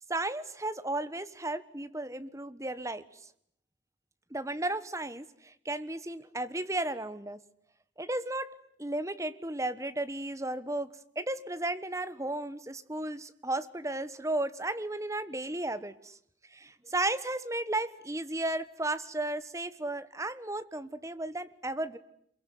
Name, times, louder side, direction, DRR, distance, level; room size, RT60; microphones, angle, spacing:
voice 1, 0.1-3.2 4.3-7.4 8.0-8.5 8.8-10.9 11.1-16.2 16.5-22.0, right 2 dB, 15° right, 13 dB, 1.3 m, -34 dB
27.0 x 22.5 x 9.5 m, 0.72 s
head